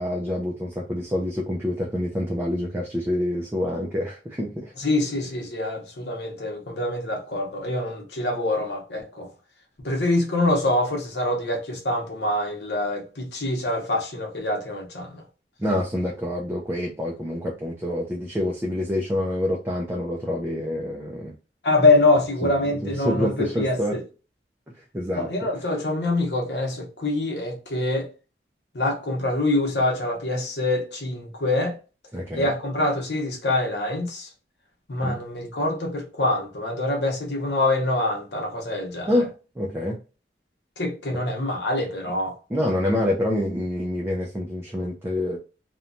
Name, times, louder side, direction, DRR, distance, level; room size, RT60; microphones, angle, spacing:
voice 1, 0.0-4.7 15.6-21.3 22.4-22.5 22.8-24.0 24.9-25.3 32.1-32.5 35.0-35.2 39.1-39.3 39.6-40.0 41.1-41.2 42.5-45.4, left 1 dB, 15° right, 0.3 m, -27 dB
voice 2, 4.8-9.3 9.8-15.2 21.6-24.0 25.1-28.1 28.7-31.8 32.3-34.3 34.9-39.1 40.8-42.4, left 2 dB, 75° left, 0.8 m, -25 dB
2.9 x 2.1 x 2.5 m
head